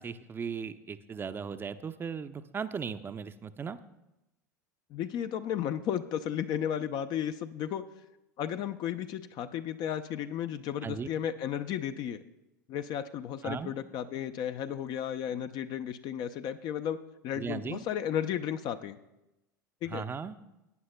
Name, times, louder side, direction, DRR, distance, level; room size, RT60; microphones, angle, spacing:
voice 1, 0.0-3.8 10.8-11.1 13.4-13.7 17.3-17.8 19.9-20.4, right 6 dB, 20° right, 11 dB, 0.6 m, -37 dB
voice 2, 4.9-7.8 8.4-12.2 12.7-17.0 17.2-19.0 19.8-20.1, left 9 dB, 45° left, 9 dB, 0.6 m, -34 dB
18.0 x 9.3 x 2.2 m, 0.93 s
figure-of-eight pair, 80°, 10 cm